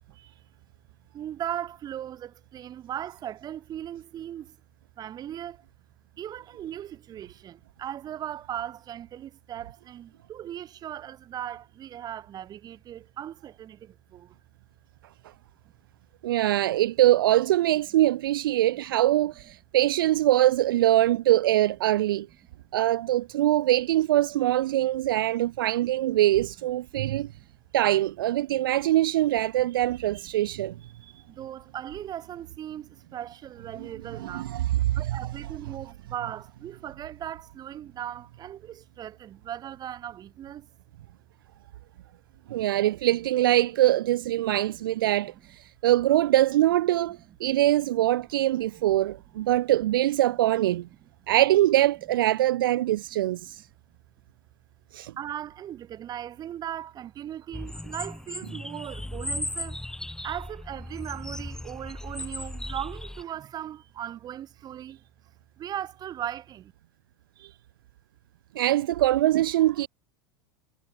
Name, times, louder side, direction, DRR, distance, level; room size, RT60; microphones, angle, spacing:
voice 1, 0.1-0.4 1.1-4.6 5.0-5.6 6.2-14.4 24.8-24.9 26.9-27.4 28.5-28.6 29.6-29.7 31.3-40.7 42.8-42.9 45.1-45.3 48.6-49.1 52.8-53.5 55.2-59.8 60.2-65.0 65.6-66.7, right 11 dB, 35° right, 2.1 m, -38 dB
voice 2, 16.2-22.3 22.7-27.3 27.7-30.7 34.2-35.2 42.5-50.9 51.3-53.7 54.9-55.1 67.4-67.5 68.6-69.9, right 14 dB, 70° right, 0.4 m, -23 dB
sound 1, 57.5-63.2, left 1 dB, 5° left, 1.8 m, -36 dB
hypercardioid pair, 90°, 12 cm